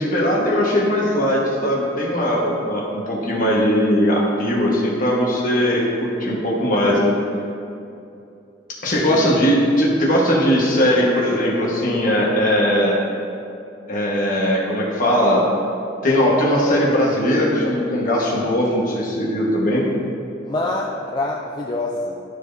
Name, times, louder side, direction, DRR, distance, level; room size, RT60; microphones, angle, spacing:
voice 1, 0.0-7.1 8.8-13.0 13.9-15.4 16.0-19.8, equal, 45° left, -4 dB, 1.4 m, -19 dB
voice 2, 8.8-9.2 20.4-22.1, left 2 dB, 20° left, -1 dB, 0.4 m, -26 dB
12.0 x 4.6 x 2.7 m, 2.7 s
head